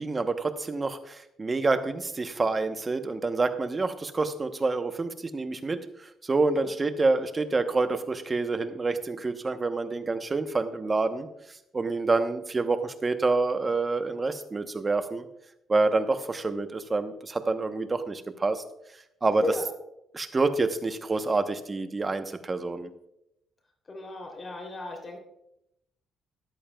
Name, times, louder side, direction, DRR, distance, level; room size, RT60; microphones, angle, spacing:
voice 1, 0.0-5.8 6.2-11.3 11.7-15.3 15.7-18.6 19.2-19.4 20.1-22.9, right 3 dB, 30° right, 9 dB, 0.9 m, -27 dB
voice 2, 19.3-19.7 23.9-25.2, left 2 dB, 35° left, 3 dB, 3.0 m, -34 dB
14.0 x 11.0 x 2.3 m, 0.80 s
cardioid pair, 90°, 0 cm